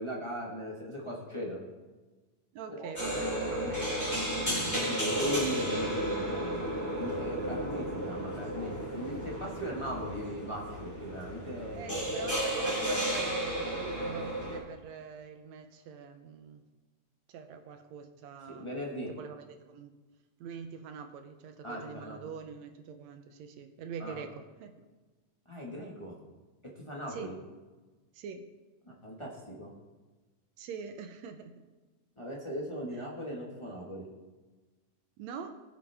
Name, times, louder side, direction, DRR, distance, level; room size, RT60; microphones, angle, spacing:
voice 1, 0.0-1.7 2.7-2.9 3.6-3.7 4.9-6.5 7.0-12.0 18.5-19.1 21.6-22.2 24.0-24.2 25.5-26.2 26.7-27.4 28.8-29.7 32.2-34.1, equal, 40° left, -3 dB, 0.4 m, -38 dB
voice 2, 2.5-4.7 7.3-7.6 11.7-16.6 17.3-18.8 19.1-19.9 20.4-24.7 27.1-27.3 28.1-28.5 30.6-31.5 35.2-35.5, right 6 dB, 75° right, 7 dB, 1.8 m, -44 dB
sound 1, 2.9-14.6, right 1 dB, 5° left, 3.4 m, -33 dB
20.0 x 7.2 x 3.4 m, 1.3 s
omnidirectional pair, 3.4 m